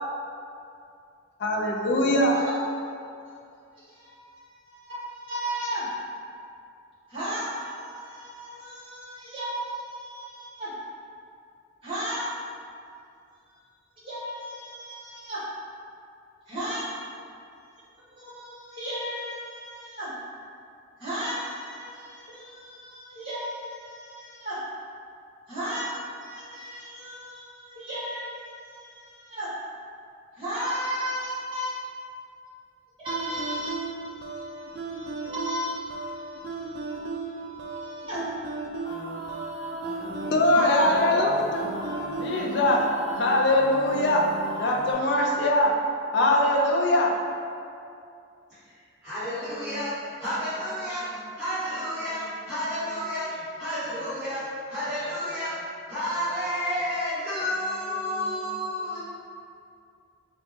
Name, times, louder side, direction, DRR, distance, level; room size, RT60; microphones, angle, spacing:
voice 1, 1.4-2.3 40.3-41.5 42.2-42.8 43.2-44.2 44.6-45.7 46.1-47.1, left 1 dB, 55° left, -1 dB, 0.4 m, -22 dB
voice 2, 3.9-5.8 7.1-10.7 11.8-12.2 14.0-15.4 16.5-16.8 18.1-20.1 21.0-24.6 25.5-25.9 26.2-29.5 30.4-31.7 33.0-38.2 40.5-41.4, right 1 dB, 25° right, -12 dB, 1.3 m, -35 dB
sound 1, 33.1-43.2, right 3 dB, 50° right, 0.3 m, -36 dB
sound 2, 38.9-44.9, equal, 25° left, 0.9 m, -37 dB
voice 3, 49.0-59.0, equal, 5° right, -22 dB, 1.4 m, -31 dB
4.3 x 2.2 x 2.8 m, 2.4 s
head